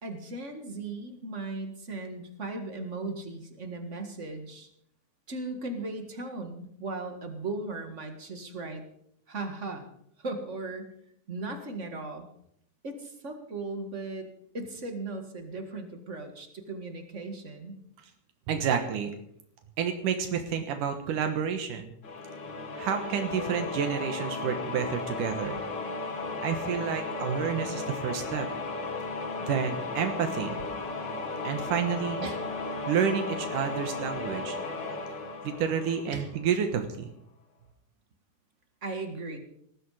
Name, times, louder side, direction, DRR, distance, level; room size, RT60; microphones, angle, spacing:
voice 1, 0.0-4.7 5.3-8.8 9.3-9.9 10.2-10.9 11.3-12.3 12.8-14.3 14.5-17.7 32.2-32.5 36.1-36.3 38.8-39.4, right 2 dB, 30° right, 6 dB, 1.4 m, -37 dB
voice 2, 18.5-19.1 19.8-21.9 22.8-25.6 26.4-28.5 29.4-30.6 31.4-32.2 32.9-34.6 35.4-37.1, right 7 dB, 80° right, 6 dB, 2.8 m, -29 dB
sound 1, 22.0-36.6, left 3 dB, 40° left, 2.2 m, -35 dB
19.0 x 13.5 x 4.9 m, 0.71 s
omnidirectional pair, 3.6 m